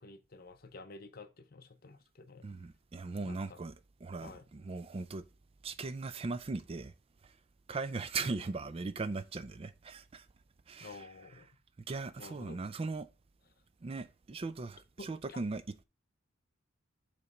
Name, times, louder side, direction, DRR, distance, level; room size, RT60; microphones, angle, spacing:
voice 1, 0.0-2.5 3.2-3.6 4.2-4.4 8.2-8.5 10.8-11.6 12.2-12.6 15.0-15.4, left 3 dB, 50° left, 0.8 m, -51 dB
voice 2, 2.4-3.7 4.0-5.2 5.6-6.9 7.2-7.4 7.7-10.3 10.7-11.1 11.9-13.1 13.8-15.6, right 3 dB, 30° right, 0.3 m, -39 dB
6.9 x 3.3 x 4.9 m
head